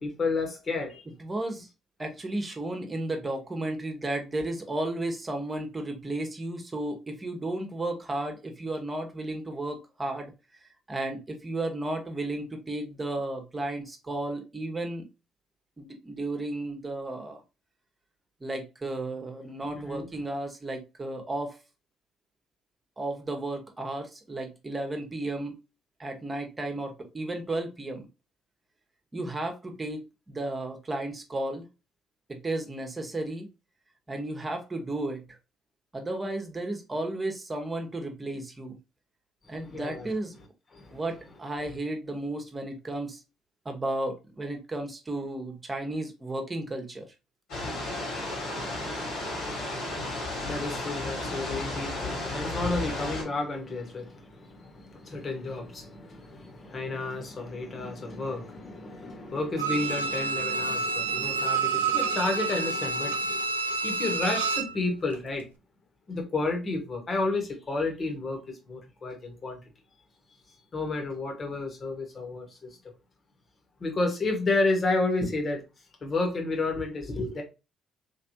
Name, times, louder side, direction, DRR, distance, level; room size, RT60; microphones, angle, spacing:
voice 1, 0.0-1.0 19.7-20.0 39.5-40.1 40.7-41.0 50.4-63.4 63.8-65.5 66.1-69.6 70.7-72.8 73.8-75.6 76.0-77.4, left 3 dB, 40° left, 1.5 m, -31 dB
voice 2, 1.2-1.7 2.0-10.3 10.9-15.0 15.8-17.4 18.4-21.6 23.0-25.5 26.0-28.1 29.1-31.6 32.3-33.5 34.1-35.4 35.9-38.8 39.5-40.3 40.9-43.2 43.6-47.1, right 2 dB, 25° right, 1.1 m, -33 dB
sound 1, 47.5-53.2, left 2 dB, 65° left, 2.1 m, -33 dB
Bowed string instrument, 59.6-64.8 65.1-65.2, right 4 dB, 85° right, 0.3 m, -28 dB
3.3 x 3.3 x 2.8 m
hypercardioid pair, 50°, 0 cm